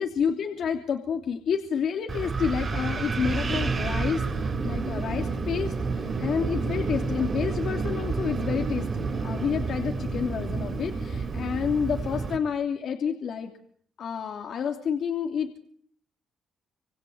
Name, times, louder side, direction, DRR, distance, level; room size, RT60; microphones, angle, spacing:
voice 1, 0.0-13.5 14.0-15.6, left 7 dB, 65° left, 4 dB, 3.0 m, -29 dB
Wind, 2.1-12.4, right 4 dB, 35° right, 5.6 m, -29 dB
26.5 x 24.5 x 8.0 m, 0.63 s
cardioid pair, 90°, 0 cm